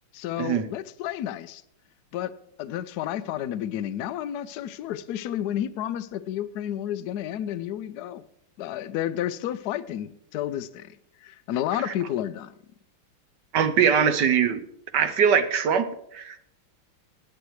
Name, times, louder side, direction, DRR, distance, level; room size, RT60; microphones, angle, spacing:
voice 1, 0.1-1.6 2.1-2.3 2.6-8.2 8.6-11.0 11.2-12.5, left 11 dB, 70° left, 0.9 m, -31 dB
voice 2, 13.5-14.6 14.9-16.4, right 7 dB, 65° right, 1.3 m, -22 dB
19.5 x 9.0 x 3.2 m
omnidirectional pair, 2.3 m